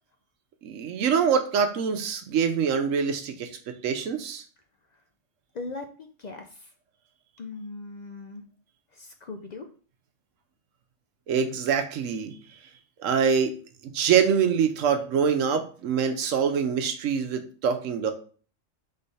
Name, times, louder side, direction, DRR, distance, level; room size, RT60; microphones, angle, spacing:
voice 1, 0.6-4.4 11.3-12.3 13.0-13.6 13.9-18.1, right 7 dB, 85° right, 7 dB, 1.0 m, -25 dB
voice 2, 5.5-6.7 7.4-8.5 8.9-9.7, left 3 dB, 65° left, 5 dB, 0.4 m, -39 dB
3.7 x 3.3 x 4.1 m, 0.41 s
omnidirectional pair, 1.3 m